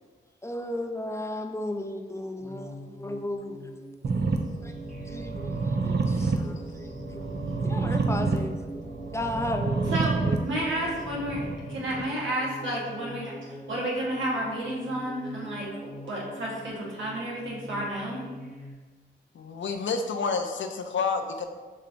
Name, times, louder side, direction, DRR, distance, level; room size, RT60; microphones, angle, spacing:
voice 1, 0.4-3.7 4.6-4.7 5.1-7.3 7.6-8.5 9.1-10.4, left 1 dB, 15° left, 4 dB, 0.4 m, -34 dB
sound 1, 2.4-18.7, equal, 45° right, 1.1 m, -43 dB
sound 2, 4.0-12.0, right 4 dB, 60° right, 0.5 m, -29 dB
voice 2, 6.7-7.1 19.3-21.4, left 5 dB, 80° left, 6 dB, 0.5 m, -30 dB
voice 3, 9.9-18.2, right 1 dB, 85° right, -5 dB, 1.2 m, -32 dB
6.3 x 2.9 x 2.6 m, 1.4 s
cardioid pair, 65°, 19 cm